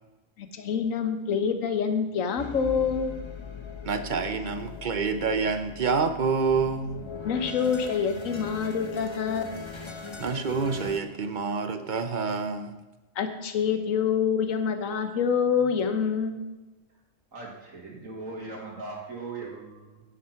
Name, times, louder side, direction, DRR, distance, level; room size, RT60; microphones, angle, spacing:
voice 1, 0.4-3.1 7.2-9.5 13.2-16.3, left 6 dB, 75° left, 8 dB, 1.4 m, -26 dB
sound 1, 2.4-11.0, left 5 dB, 25° left, 0.7 m, -40 dB
voice 2, 3.8-7.0 10.2-12.7, right 5 dB, 45° right, 9 dB, 0.7 m, -27 dB
voice 3, 17.3-20.0, right 3 dB, 75° right, -3 dB, 2.2 m, -39 dB
10.0 x 7.5 x 5.7 m, 1.1 s
omnidirectional pair, 1.4 m